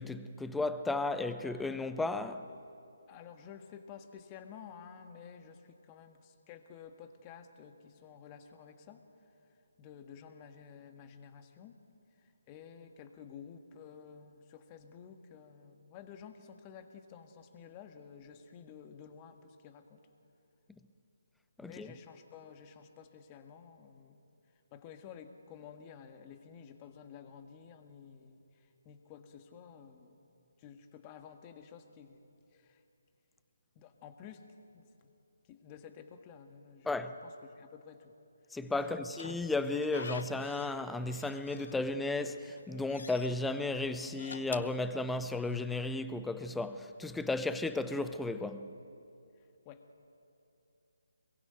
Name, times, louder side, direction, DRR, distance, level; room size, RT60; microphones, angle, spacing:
voice 1, 0.0-2.5 21.6-21.9 36.8-37.2 38.5-48.7, left 2 dB, 5° left, 0.8 m, -34 dB
voice 2, 3.1-9.0 9.8-11.8 12.2-20.0 21.6-24.2 24.7-30.3 30.6-32.8 33.7-34.5 34.7-35.1 35.4-38.1 38.8-39.2 49.4-49.9, left 7 dB, 20° left, 1.7 m, -52 dB
Slam / Squeak, 38.8-40.8 41.1-42.1 42.5-43.4 44.0-45.6, left 4 dB, 60° left, 1.1 m, -46 dB
26.0 x 22.5 x 9.3 m
figure-of-eight pair, 145°, 0 cm